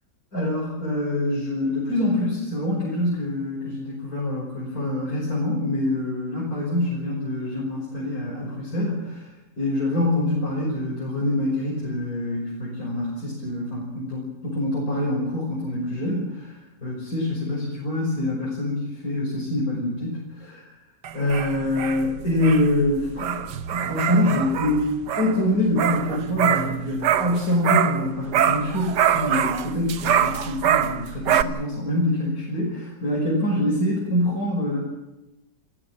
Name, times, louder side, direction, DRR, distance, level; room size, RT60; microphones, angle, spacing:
voice 1, 0.3-9.3 9.6-20.6 21.1-34.8, left 1 dB, 50° left, -4 dB, 6.4 m, -25 dB
sound 1, 21.0-28.1 28.3-31.4, right 10 dB, 75° right, 1.6 m, -24 dB
29.5 x 16.0 x 7.6 m, 1.0 s
omnidirectional pair, 1.9 m